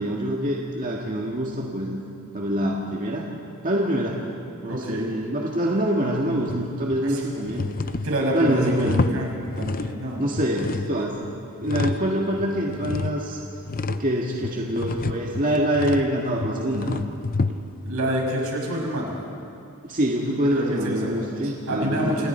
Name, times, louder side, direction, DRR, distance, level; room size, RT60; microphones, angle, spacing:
voice 1, 0.0-2.0 2.3-3.3 3.6-4.2 4.6-7.7 8.3-9.1 10.2-11.3 11.6-13.4 13.9-17.0 19.8-22.3, right 1 dB, 40° right, -2 dB, 1.9 m, -25 dB
voice 2, 4.7-5.1 7.0-7.2 8.0-9.3 9.6-10.2 17.8-19.1 20.5-21.1 21.4-22.3, equal, 75° right, -2 dB, 6.2 m, -27 dB
sound 1, 6.5-7.1 7.5-10.1 10.4-12.1 12.4-17.9, left 3 dB, 40° left, 0.7 m, -29 dB
29.0 x 28.0 x 4.5 m, 2.6 s
head